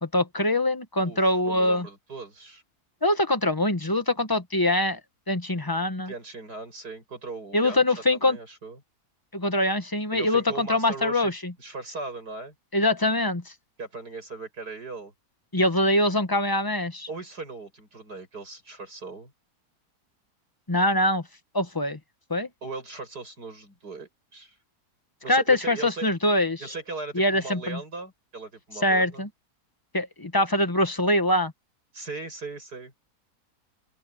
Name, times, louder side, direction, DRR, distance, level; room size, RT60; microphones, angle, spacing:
voice 1, 0.0-1.9 3.0-5.0 5.3-6.1 7.5-8.4 9.3-11.5 12.7-13.4 15.5-17.1 20.7-21.2 21.5-22.0 22.3-22.5 25.3-26.6 27.1-27.8 28.8-29.3 29.9-31.5, left 1 dB, 15° left, 1.1 m, -23 dB
voice 2, 1.0-2.6 6.1-7.8 8.1-8.8 10.1-11.3 11.6-12.5 13.8-15.1 17.1-19.3 22.6-24.6 25.2-26.1 26.6-29.3 31.9-33.0, right 3 dB, 85° right, 8.6 m, -38 dB
open air
omnidirectional pair, 1.7 m